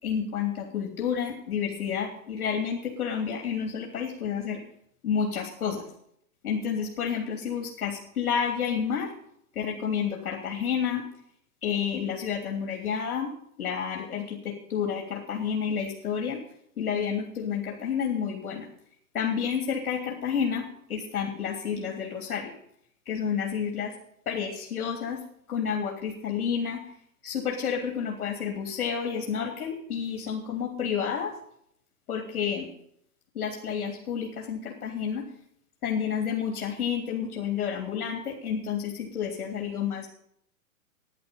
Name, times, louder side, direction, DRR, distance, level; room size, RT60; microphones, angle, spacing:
voice 1, 0.0-4.6 5.0-5.8 6.4-9.1 9.5-11.0 11.6-16.4 16.8-18.7 19.1-22.5 23.0-23.9 24.3-25.2 25.5-26.8 27.2-31.4 32.1-32.7 33.3-35.2 35.8-40.1, left 7 dB, 70° left, 2 dB, 3.1 m, -30 dB
12.0 x 10.5 x 5.5 m, 0.68 s
hypercardioid pair, 130°, 44 cm